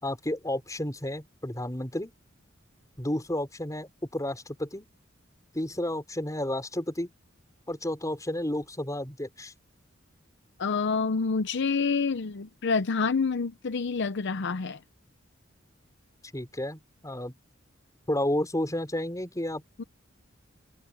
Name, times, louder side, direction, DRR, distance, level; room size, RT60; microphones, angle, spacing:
voice 1, 0.0-2.1 3.0-4.9 5.5-7.1 7.7-9.5 16.3-17.3 18.1-19.6, left 1 dB, 15° left, 5.4 m, -31 dB
voice 2, 10.6-14.8 19.8-19.9, left 4 dB, 60° left, 0.6 m, -27 dB
head